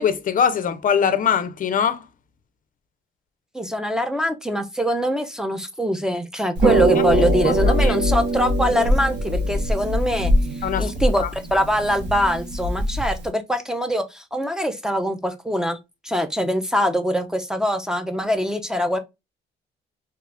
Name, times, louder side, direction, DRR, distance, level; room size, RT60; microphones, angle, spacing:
voice 1, 0.0-2.0 7.3-7.9 8.7-8.9 10.6-10.9 11.2-11.3, left 7 dB, 45° left, 0.5 m, -22 dB
voice 2, 3.5-10.3 10.8-15.8 16.0-19.0, equal, 5° right, 0.5 m, -23 dB
Harp, 6.6-13.3, right 1 dB, 60° right, 1.0 m, -22 dB
3.0 x 2.3 x 3.3 m
cardioid pair, 90°, 20 cm